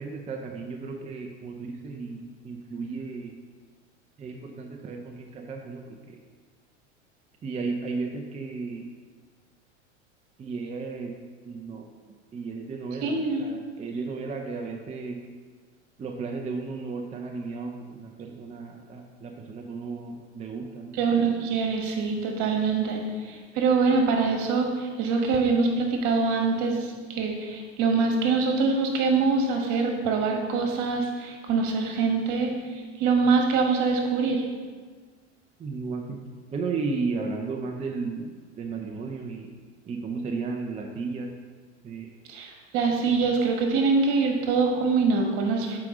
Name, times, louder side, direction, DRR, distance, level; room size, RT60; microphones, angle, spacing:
voice 1, 0.0-3.4 4.2-6.2 7.4-8.9 10.4-11.1 11.4-11.9 12.3-15.2 16.0-21.0 35.6-36.2 36.5-39.5 39.9-41.3 41.8-42.1, right 4 dB, 20° right, 2 dB, 0.6 m, -34 dB
voice 2, 13.0-13.4 21.0-32.5 33.0-34.4 42.3-45.8, right 4 dB, 55° right, 2 dB, 1.5 m, -24 dB
7.6 x 4.9 x 3.7 m, 1.5 s
hypercardioid pair, 95°, 36 cm